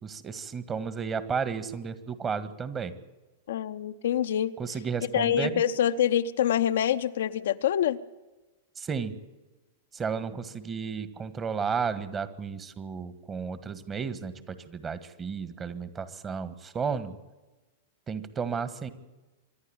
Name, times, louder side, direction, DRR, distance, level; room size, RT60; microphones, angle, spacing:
voice 1, 0.0-2.9 4.6-5.6 8.8-9.2 9.9-17.2 18.1-18.9, right 6 dB, 25° right, 13 dB, 1.6 m, -33 dB
voice 2, 3.5-4.5 5.1-8.0, left 10 dB, 65° left, 9 dB, 0.8 m, -25 dB
26.0 x 11.5 x 8.9 m, 1.2 s
figure-of-eight pair, 100°, 0 cm